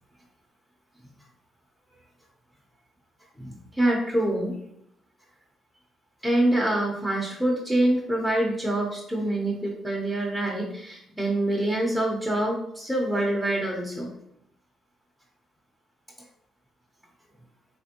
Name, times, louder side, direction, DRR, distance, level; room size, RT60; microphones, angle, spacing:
voice 1, 3.4-4.6 6.2-14.1, right 1 dB, 5° left, -3 dB, 0.8 m, -25 dB
3.4 x 3.3 x 2.9 m, 0.74 s
cardioid pair, 90°, 0 cm